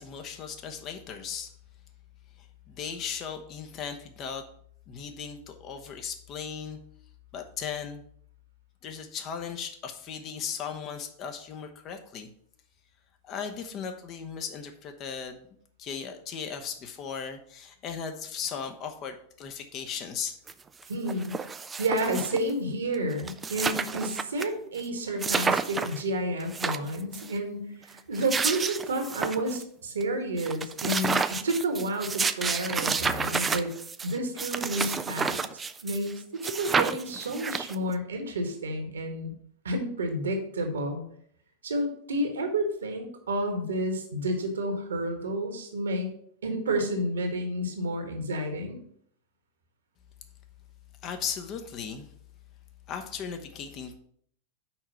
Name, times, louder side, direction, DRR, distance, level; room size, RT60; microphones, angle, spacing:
voice 1, 0.0-1.5 2.4-4.4 4.9-6.8 7.3-8.0 8.8-12.3 13.2-15.5 15.8-20.4 51.0-52.1 52.9-54.0, left 7 dB, 35° left, 5 dB, 1.0 m, -37 dB
sound 1, 20.5-20.6 20.8-22.5 22.9-23.0 23.2-24.5 24.8-24.9 25.2-26.0 26.4-27.3 28.0-29.6 30.0-30.1 30.4-36.1 36.4-37.9, right 5 dB, 15° right, 0.4 m, -30 dB
voice 2, 20.9-21.4 21.8-33.7 34.0-35.4 35.8-39.3 39.6-41.0 41.6-46.1 46.4-48.8, right 1 dB, 70° right, 5 dB, 1.5 m, -30 dB
6.0 x 4.9 x 5.7 m, 0.64 s
figure-of-eight pair, 90°, 0 cm